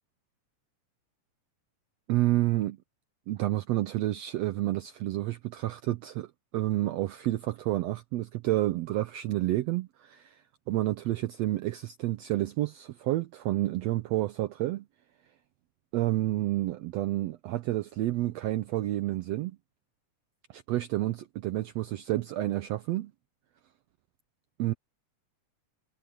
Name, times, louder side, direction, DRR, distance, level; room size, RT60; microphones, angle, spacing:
voice 1, 2.1-2.8 3.3-10.4 10.7-14.9 15.9-19.6 20.5-23.1 24.6-24.7, right 16 dB, 90° right, 1.5 m, -29 dB
omnidirectional pair, 3.7 m